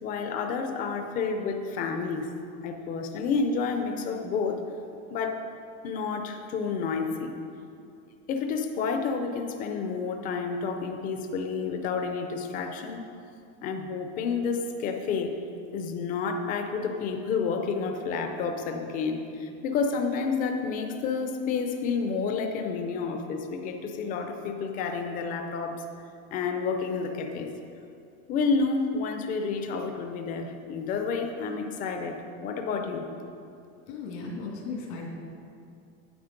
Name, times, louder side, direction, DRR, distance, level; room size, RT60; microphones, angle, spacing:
voice 1, 0.0-2.3 2.6-4.6 5.1-5.4 5.8-7.3 8.3-13.0 13.6-15.3 15.7-25.8 26.3-27.5 28.3-32.1 32.4-33.0, left 5 dB, 25° left, 5 dB, 0.5 m, -30 dB
voice 2, 33.9-35.0, left 4 dB, 80° left, -1 dB, 2.4 m, -36 dB
9.6 x 7.6 x 5.1 m, 2.5 s
cardioid pair, 175°, 32 cm